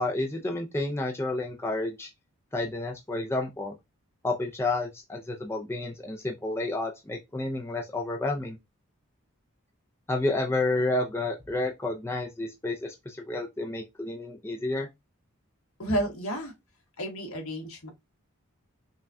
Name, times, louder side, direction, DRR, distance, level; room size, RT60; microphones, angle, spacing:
voice 1, 0.0-2.1 2.5-3.7 4.2-8.6 10.1-14.9, left 2 dB, 10° left, 0.4 m, -30 dB
voice 2, 15.8-16.5 17.0-17.9, right 1 dB, 70° left, 1.3 m, -31 dB
5.4 x 2.2 x 2.6 m
head